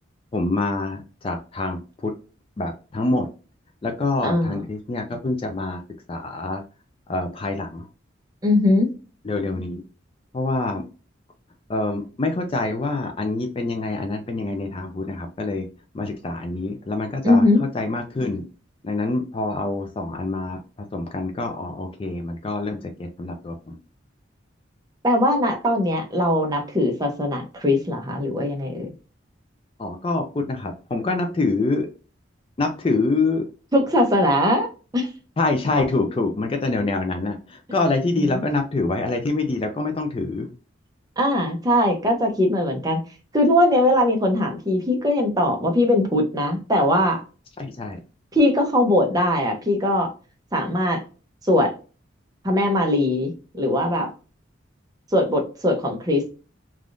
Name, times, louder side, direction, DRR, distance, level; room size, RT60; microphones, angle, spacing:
voice 1, 0.3-2.1 2.6-3.3 3.8-5.8 6.1-6.6 7.1-7.9 9.2-9.8 10.3-10.8 11.7-15.6 15.9-17.4 17.7-18.4 18.8-23.8 29.8-31.9 32.6-33.5 35.4-40.5 47.6-48.0, left 2 dB, 30° left, 0.4 m, -26 dB
voice 2, 4.2-4.6 8.4-8.9 17.2-17.6 25.0-28.9 33.7-34.7 34.9-35.1 38.2-38.4 41.2-43.0 43.3-47.2 48.3-50.1 50.5-51.0 51.4-51.7 52.4-54.1 55.1-56.3, left 1 dB, 20° right, 0.7 m, -20 dB
3.4 x 2.4 x 2.5 m
head